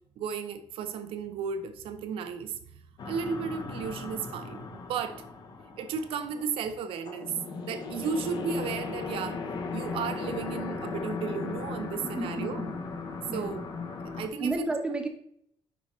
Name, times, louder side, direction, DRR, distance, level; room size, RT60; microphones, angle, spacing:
voice 1, 0.2-2.6 3.0-5.2 5.8-7.3 7.6-9.4 9.7-12.6 13.3-13.6 14.1-14.7, right 6 dB, 65° right, 0.7 m, -34 dB
sound 1, 3.0-14.3, left 4 dB, 45° left, 0.8 m, -37 dB
voice 2, 12.0-12.8 13.3-13.6 14.4-15.1, right 2 dB, 10° right, 0.8 m, -32 dB
6.7 x 5.5 x 3.1 m
cardioid pair, 180°, 10 cm